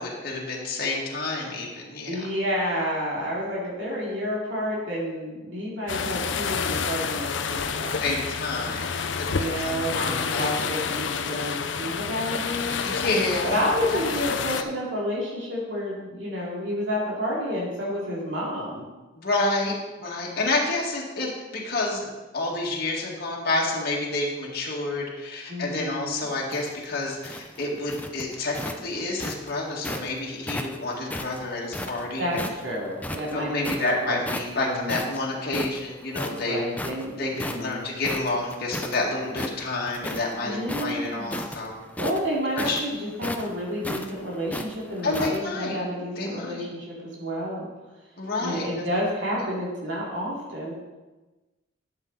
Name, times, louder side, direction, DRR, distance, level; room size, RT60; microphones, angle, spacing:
voice 1, 0.0-2.2 8.0-8.9 9.2-10.7 12.8-13.6 13.9-14.2 14.5-14.6 19.2-19.7 20.0-32.4 33.3-36.6 37.2-41.8 42.6-42.8 45.0-45.8 46.2-46.7 48.2-48.7, left 2 dB, 55° left, -3 dB, 2.1 m, -29 dB
voice 2, 2.1-8.1 9.3-12.9 13.4-18.8 25.5-26.3 32.2-34.2 34.6-35.0 36.2-37.9 40.4-41.4 42.0-47.7 48.4-50.7, equal, 70° right, -5 dB, 2.6 m, -30 dB
sound 1, 5.9-14.6, left 6 dB, 70° left, 0.5 m, -29 dB
sound 2, 26.3-30.1 30.5-32.6 33.0-33.9 34.2-34.6 34.9-39.0 39.3-40.3 40.6-45.4, left 1 dB, 10° left, 0.5 m, -34 dB
11.5 x 7.5 x 4.0 m, 1.2 s
head